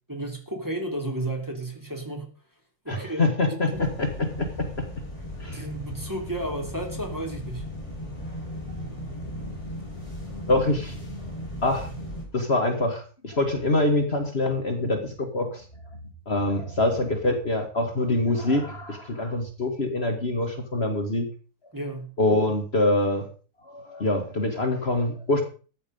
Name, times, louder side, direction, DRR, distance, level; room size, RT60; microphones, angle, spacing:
voice 1, 0.1-2.2 2.8-3.8 5.5-7.6 21.7-22.1, right 1 dB, 10° right, 1 dB, 3.1 m, -33 dB
voice 2, 2.9-4.8 5.4-5.6 10.5-10.9 11.6-11.9 12.3-15.6 16.3-21.3 22.2-23.3 23.6-25.4, left 2 dB, 40° left, 4 dB, 2.1 m, -25 dB
sound 1, 3.7-12.2, left 1 dB, 20° left, 6.0 m, -36 dB
14.0 x 9.4 x 5.3 m, 0.37 s
omnidirectional pair, 1.6 m